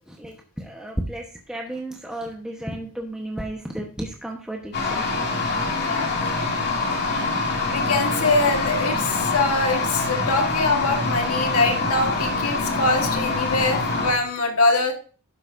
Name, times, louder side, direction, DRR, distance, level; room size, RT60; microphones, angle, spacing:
voice 1, 0.1-5.1 10.2-10.3, right 1 dB, 5° right, -1 dB, 1.2 m, -33 dB
sound 1, 4.7-14.1, left 3 dB, 50° left, 2.7 m, -25 dB
voice 2, 5.8-6.2 7.1-7.2 7.6-14.9, left 3 dB, 80° left, 3 dB, 1.7 m, -23 dB
12.0 x 9.7 x 2.7 m, 0.38 s
head